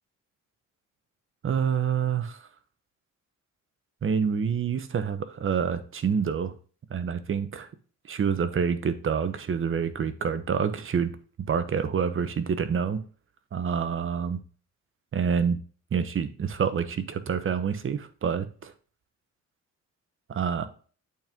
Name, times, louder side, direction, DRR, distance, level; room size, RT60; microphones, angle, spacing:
voice 1, 1.4-2.4 4.0-6.5 6.9-7.7 8.1-11.1 11.5-13.0 13.5-14.4 15.1-15.6 15.9-18.7 20.3-20.7, right 7 dB, 45° right, 12 dB, 1.0 m, -27 dB
8.6 x 4.5 x 3.6 m, 0.39 s
cardioid pair, 90°, 30 cm